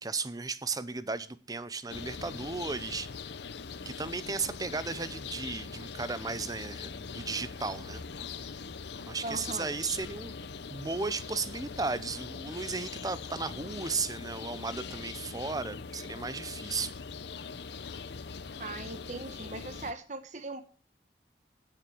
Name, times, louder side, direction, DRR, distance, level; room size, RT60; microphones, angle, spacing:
voice 1, 0.0-3.1 3.9-8.0 9.1-10.3 10.7-17.0, right 4 dB, 20° right, 15 dB, 0.6 m, -35 dB
sound 1, 1.9-19.9, left 5 dB, 70° left, 0.7 m, -42 dB
voice 2, 9.2-9.7 18.6-20.6, right 2 dB, 40° right, 9 dB, 1.2 m, -39 dB
9.4 x 7.3 x 7.6 m, 0.39 s
head